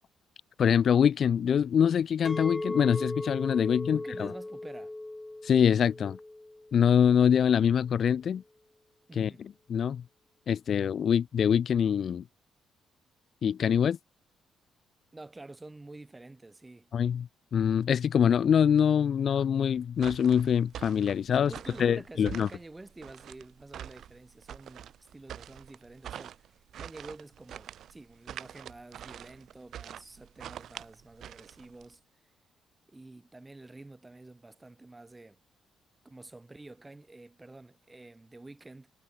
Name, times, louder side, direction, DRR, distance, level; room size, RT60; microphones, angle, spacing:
voice 1, 0.6-4.3 5.4-6.2 6.7-8.4 9.2-9.3 9.7-10.0 10.5-12.2 13.4-14.0 16.9-21.5 21.8-22.5, left 8 dB, 55° left, 0.4 m, -24 dB
Chink clink, 2.2-7.4, left 2 dB, 15° left, 1.2 m, -38 dB
voice 2, 3.8-5.0 9.1-9.5 15.1-16.9 21.3-32.3 32.9-35.4 36.0-38.9, right 2 dB, 15° right, 3.8 m, -49 dB
sound 1, 19.9-31.9, right 10 dB, 70° right, 1.5 m, -45 dB
cardioid pair, 90°, 0 cm